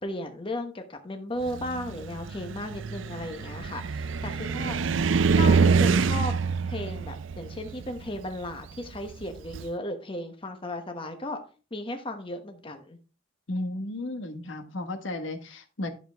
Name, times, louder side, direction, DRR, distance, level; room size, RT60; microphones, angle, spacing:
voice 1, 0.0-4.8 5.3-6.3 6.6-11.4 11.7-13.0, left 1 dB, 25° left, 5 dB, 1.1 m, -35 dB
Car, 1.5-9.7, right 5 dB, 70° right, 0.5 m, -26 dB
voice 2, 13.5-15.9, left 2 dB, 70° left, 6 dB, 1.4 m, -34 dB
11.0 x 6.8 x 3.5 m, 0.36 s
head